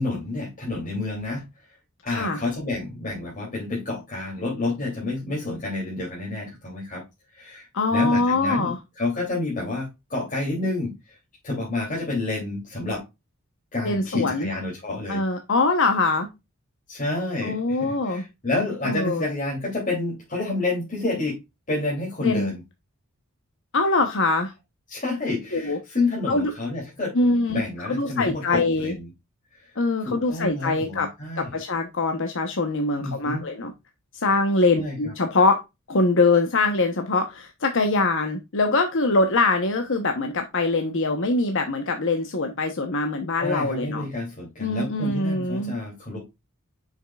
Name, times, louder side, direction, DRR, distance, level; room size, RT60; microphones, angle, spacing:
voice 1, 0.0-1.5 2.0-7.0 7.3-11.2 11.4-13.0 13.7-15.2 16.9-21.4 21.7-22.6 24.9-27.2 27.5-29.1 29.5-31.6 32.9-33.4 34.8-35.1 43.4-46.3, left 2 dB, 35° left, 3.0 m, -29 dB
voice 2, 2.1-2.4 7.7-8.8 13.8-14.5 15.1-16.3 17.4-18.2 18.8-19.2 22.2-22.5 23.7-24.5 25.5-25.8 26.3-26.5 27.1-27.6 27.8-28.9 29.8-31.1 31.4-33.7 34.1-35.6 35.9-44.1 44.6-45.7, left 3 dB, 60° left, 1.0 m, -23 dB
7.2 x 6.4 x 2.4 m
head